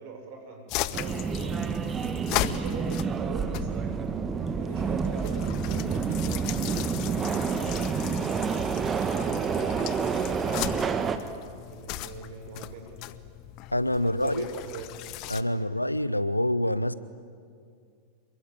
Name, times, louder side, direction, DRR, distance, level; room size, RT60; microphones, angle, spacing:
voice 1, 0.0-1.6 2.3-4.0 4.6-6.9 7.5-11.3 11.7-13.0 14.0-14.9 15.5-15.7, right 4 dB, 50° right, 3 dB, 6.5 m, -42 dB
sound 1, 0.7-15.4, left 15 dB, 40° left, 0.9 m, -37 dB
Subway metro underground, 0.9-11.2, right 6 dB, 20° right, 1.6 m, -29 dB
voice 2, 13.7-14.5 15.3-16.9, left 1 dB, 85° left, 17 dB, 0.8 m, -26 dB
27.0 x 22.5 x 8.8 m, 2.2 s
figure-of-eight pair, 90°, 0 cm